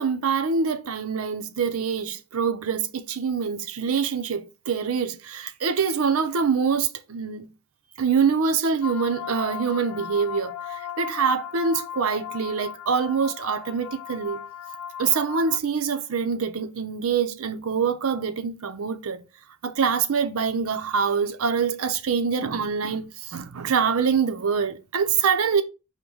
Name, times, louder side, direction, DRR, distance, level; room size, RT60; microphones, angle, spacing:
voice 1, 0.0-7.5 8.0-14.4 15.0-19.2 19.6-25.6, right 6 dB, 65° right, 0.6 m, -25 dB
sound 1, 8.8-15.6, left 9 dB, 75° left, 0.4 m, -37 dB
5.3 x 2.1 x 4.6 m
head